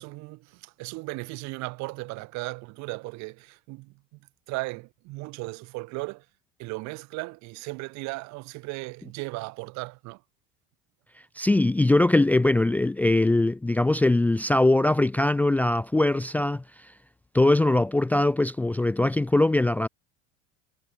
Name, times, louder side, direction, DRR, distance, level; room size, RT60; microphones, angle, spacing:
voice 1, 0.0-3.9 4.5-6.2 6.6-10.2, right 24 dB, 65° right, 2.7 m, -36 dB
voice 2, 11.4-16.6 17.3-19.9, left 2 dB, 5° left, 0.5 m, -21 dB
cardioid pair, 145°, 31 cm